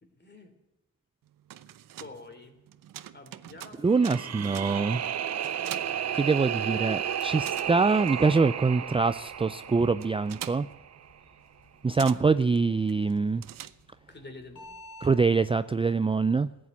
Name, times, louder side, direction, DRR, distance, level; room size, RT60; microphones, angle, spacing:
voice 1, 0.0-0.5 2.0-2.6 3.1-4.8 14.1-14.8, left 2 dB, 35° left, 7 dB, 3.2 m, -48 dB
sound 1, 1.3-6.9 7.1-14.2, right 12 dB, 90° right, 0.7 m, -45 dB
voice 2, 3.8-5.0 5.9-10.7 11.8-13.4 15.0-16.5, right 4 dB, 15° right, 13 dB, 0.4 m, -24 dB
sound 2, 3.9-11.0, right 9 dB, 55° right, 0.7 m, -33 dB
sound 3, 6.9-15.1, left 2 dB, 70° left, 6.7 m, -55 dB
15.5 x 8.7 x 9.3 m, 0.98 s
cardioid pair, 85°, 32 cm